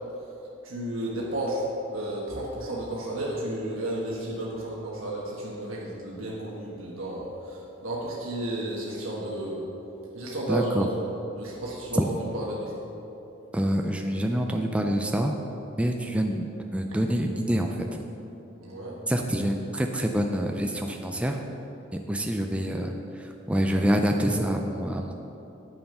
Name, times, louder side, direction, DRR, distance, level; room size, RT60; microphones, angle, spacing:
voice 1, 0.6-1.6 1.9-9.7 10.1-11.0 11.3-12.1 12.3-12.9 18.6-19.0, right 1 dB, 90° right, -5 dB, 1.4 m, -32 dB
voice 2, 10.5-10.9 11.9-12.0 13.5-15.3 15.8-17.9 19.1-21.4 21.9-25.1, equal, 5° right, 3 dB, 0.4 m, -26 dB
9.1 x 7.0 x 5.5 m, 3.0 s
head